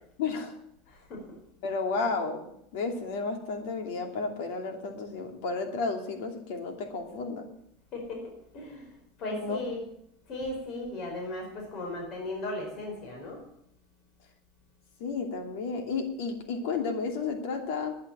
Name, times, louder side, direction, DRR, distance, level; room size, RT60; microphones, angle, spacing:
voice 1, 0.2-0.5 1.6-7.5 9.3-9.6 15.0-18.0, left 4 dB, 75° left, 4 dB, 2.7 m, -32 dB
voice 2, 7.9-8.9 9.2-9.8 10.3-13.4, left 2 dB, 50° left, 1 dB, 4.9 m, -36 dB
11.5 x 9.6 x 8.7 m, 0.75 s
supercardioid pair, 120°, 0 cm